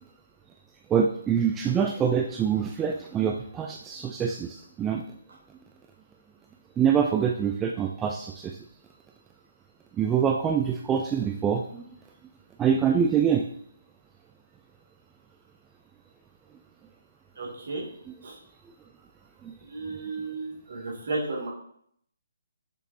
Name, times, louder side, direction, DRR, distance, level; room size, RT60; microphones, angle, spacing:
voice 1, 0.9-5.0 6.8-8.6 10.0-11.9 12.6-13.4 19.4-19.5, right 7 dB, 10° right, 2 dB, 0.3 m, -25 dB
voice 2, 17.4-17.8 18.2-18.4 19.6-21.5, right 3 dB, 50° right, -4 dB, 2.6 m, -33 dB
6.7 x 5.9 x 2.8 m, 0.66 s
figure-of-eight pair, 140°, 0 cm